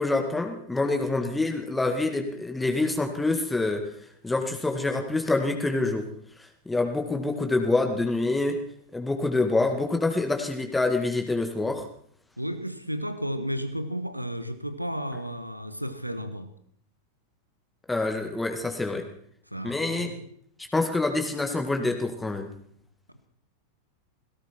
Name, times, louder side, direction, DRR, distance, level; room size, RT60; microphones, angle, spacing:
voice 1, 0.0-3.9 4.2-6.1 6.4-8.6 8.9-11.9 17.9-19.1 19.6-20.1 20.7-22.5, left 2 dB, 10° left, 4 dB, 1.9 m, -26 dB
voice 2, 12.4-16.5 19.5-20.3, equal, 90° right, 11 dB, 1.4 m, -33 dB
18.0 x 16.5 x 4.5 m, 0.64 s
figure-of-eight pair, 90°, 0 cm